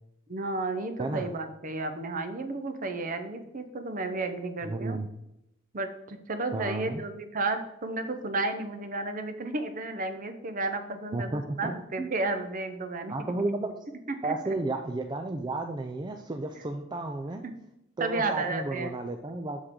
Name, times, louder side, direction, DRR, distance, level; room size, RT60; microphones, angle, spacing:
voice 1, 0.3-5.0 5.7-13.1 14.1-14.6 17.4-17.5 18.0-18.9, right 2 dB, 45° right, 8 dB, 0.8 m, -32 dB
voice 2, 4.6-5.1 6.5-7.0 11.1-12.1 13.1-13.7 14.2-17.4 18.0-19.6, right 2 dB, 25° right, 4 dB, 0.4 m, -33 dB
7.2 x 6.4 x 3.7 m, 0.86 s
head